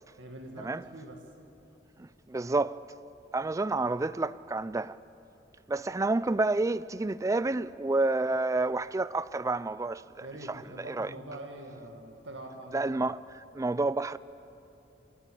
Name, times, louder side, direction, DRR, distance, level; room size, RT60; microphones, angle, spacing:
voice 1, 0.2-1.2 10.2-13.0, right 1 dB, 90° right, 2.1 m, -44 dB
voice 2, 2.0-2.8 3.3-5.0 5.7-11.1 12.7-14.2, right 2 dB, 15° right, 0.4 m, -30 dB
25.0 x 14.0 x 8.7 m
head